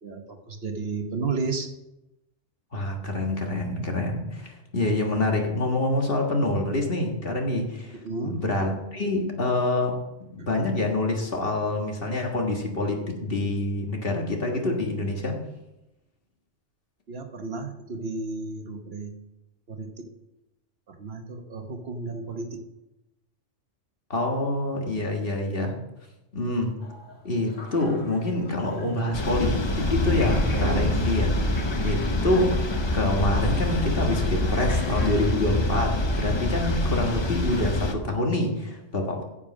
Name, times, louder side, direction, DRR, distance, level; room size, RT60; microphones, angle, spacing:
voice 1, 0.0-1.7 8.0-8.4 10.4-10.5 17.1-19.1 19.7-20.1 20.9-22.6 30.5-30.9, right 4 dB, 55° right, 5 dB, 1.2 m, -32 dB
voice 2, 2.7-8.0 8.2-10.0 10.3-15.4 24.1-25.8 26.3-26.7 27.2-31.3 31.8-32.6 32.9-39.2, left 2 dB, 50° left, 2 dB, 1.8 m, -26 dB
sound 1, 26.8-29.8 30.0-37.9, left 1 dB, 80° left, 1.9 m, -42 dB
sound 2, 29.1-37.9, left 1 dB, 25° left, 0.8 m, -25 dB
10.0 x 7.2 x 6.2 m, 0.93 s
omnidirectional pair, 1.3 m